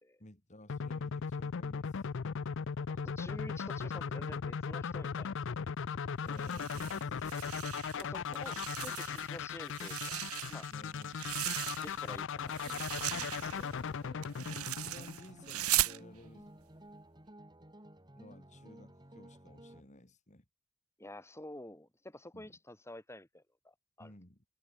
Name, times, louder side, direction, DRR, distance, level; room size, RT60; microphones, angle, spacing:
voice 1, 0.2-2.1 6.2-7.5 7.9-8.1 10.7-11.3 14.7-16.5 18.2-20.4 22.3-22.6 24.0-24.4, left 1 dB, 35° left, 3.1 m, -56 dB
sound 1, 0.7-15.6, left 6 dB, 55° left, 0.5 m, -38 dB
voice 2, 2.9-5.3 6.9-7.0 7.3-7.4 8.0-10.7 11.8-12.9 21.0-24.1, left 1 dB, 10° left, 3.4 m, -49 dB
sound 2, 6.3-8.0 8.3-9.3 9.7-12.2 12.5-16.0, right 14 dB, 85° right, 1.8 m, -38 dB
sound 3, 12.4-19.8, right 1 dB, 20° right, 4.5 m, -55 dB
head